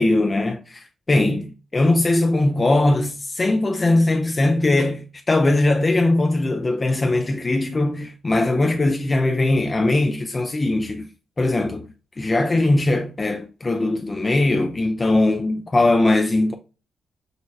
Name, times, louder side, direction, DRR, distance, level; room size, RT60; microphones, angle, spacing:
voice 1, 0.0-11.1 11.4-11.9 12.2-16.5, left 2 dB, 30° left, 0.5 m, -20 dB
6.4 x 2.2 x 2.7 m
cardioid pair, 80°, 0 cm